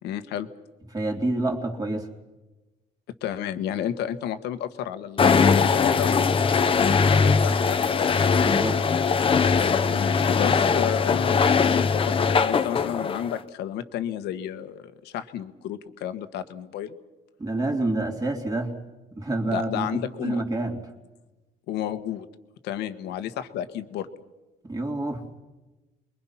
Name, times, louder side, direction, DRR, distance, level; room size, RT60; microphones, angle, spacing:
voice 1, 0.0-0.5 3.2-8.5 9.9-16.9 19.5-20.4 21.7-22.3 22.6-24.1, left 10 dB, 80° left, 10 dB, 1.5 m, -32 dB
voice 2, 0.9-2.1 8.4-8.8 17.4-18.7 19.1-20.8 24.6-25.2, right 2 dB, 20° right, 3 dB, 3.4 m, -28 dB
sound 1, 5.2-13.4, left 5 dB, 30° left, 1.1 m, -21 dB
29.0 x 22.0 x 5.9 m, 1.1 s
cardioid pair, 110°, 17 cm